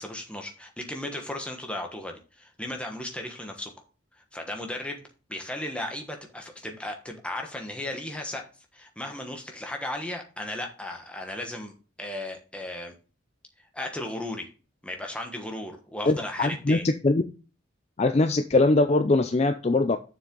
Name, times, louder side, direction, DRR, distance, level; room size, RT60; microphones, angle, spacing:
voice 1, 0.0-3.7 4.1-5.0 5.3-8.4 8.7-12.9 13.7-14.5 14.8-16.9, left 1 dB, 5° left, 2 dB, 1.2 m, -35 dB
voice 2, 16.1-16.8 17.0-17.2 18.0-20.0, left 2 dB, 30° left, 9 dB, 0.4 m, -22 dB
7.2 x 6.6 x 3.8 m, 0.34 s
head